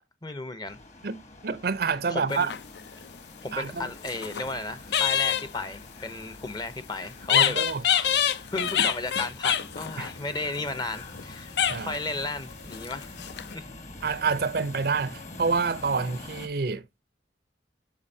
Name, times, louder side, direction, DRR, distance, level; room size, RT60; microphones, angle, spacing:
voice 1, 0.2-0.8 2.1-2.5 3.4-8.2 8.5-13.2 13.5-13.6 14.0-14.2, left 2 dB, 25° left, 0.6 m, -34 dB
sound 1, 0.7-16.5, left 2 dB, 40° left, 1.3 m, -45 dB
voice 2, 1.0-2.5 3.5-3.9 7.3-7.8 10.0-10.1 11.7-12.0 14.0-16.8, right 5 dB, 55° right, 0.5 m, -28 dB
sound 2, 2.3-3.1 3.8-4.5 4.9-5.5 7.2-11.2 11.6-12.1 12.7-13.5, left 9 dB, 70° left, 0.5 m, -26 dB
8.6 x 5.0 x 2.7 m
head